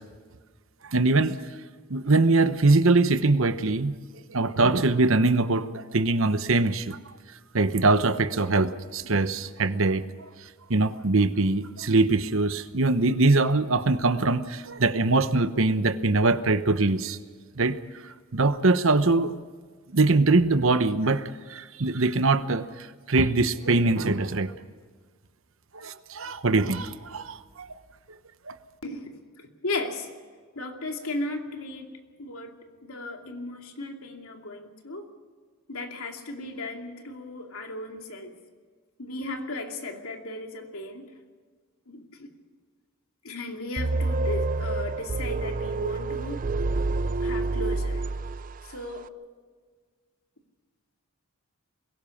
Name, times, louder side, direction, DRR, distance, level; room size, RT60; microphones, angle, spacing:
voice 1, 0.8-1.4 1.9-3.9 4.3-7.0 7.5-10.0 10.7-17.2 17.6-17.8 18.0-19.4 19.9-24.5 25.7-27.7 28.5-28.6, right 3 dB, 65° right, 11 dB, 1.0 m, -23 dB
voice 2, 29.4-30.1 30.5-31.9 32.2-35.1 35.7-38.3 39.0-41.1 41.9-42.3 43.2-46.5 47.2-48.0 48.6-49.1, left 2 dB, 75° left, 3 dB, 2.7 m, -36 dB
sound 1, 43.8-48.8, right 3 dB, 35° right, 0.5 m, -28 dB
22.5 x 17.0 x 7.2 m, 1.6 s
head